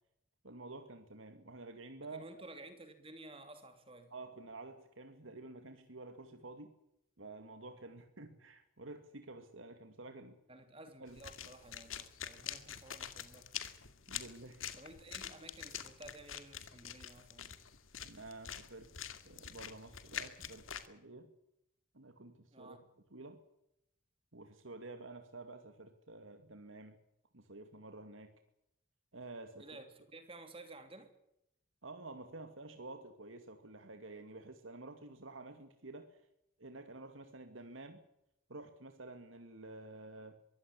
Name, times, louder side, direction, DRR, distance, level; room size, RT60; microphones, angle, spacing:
voice 1, 0.4-2.3 4.1-6.7 7.2-10.4 11.0-11.2 14.1-14.6 18.0-18.9 19.2-21.3 21.9-22.8 23.1-23.4 24.3-27.0 27.3-28.3 29.1-29.6 31.8-36.2 36.6-38.0 38.5-40.4, right 2 dB, 80° right, 7 dB, 2.3 m, -50 dB
voice 2, 2.1-4.1 10.5-13.5 14.8-17.6 22.5-22.8 29.6-31.1, right 2 dB, 30° right, 8 dB, 3.1 m, -53 dB
sound 1, 11.1-20.9, left 9 dB, 90° left, 2.3 m, -46 dB
23.5 x 16.5 x 8.5 m, 0.81 s
head